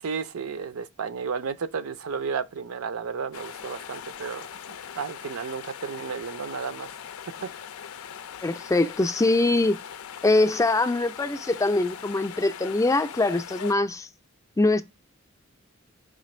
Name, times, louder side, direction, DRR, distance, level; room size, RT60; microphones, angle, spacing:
voice 1, 0.0-4.5 4.9-6.9 7.4-7.5, right 6 dB, 85° right, 0.5 m, -32 dB
sound 1, 3.3-13.7, left 8 dB, 85° left, 0.4 m, -41 dB
voice 2, 8.4-9.8 10.2-14.1 14.6-14.8, left 2 dB, 15° left, 0.4 m, -23 dB
5.0 x 2.5 x 4.1 m
head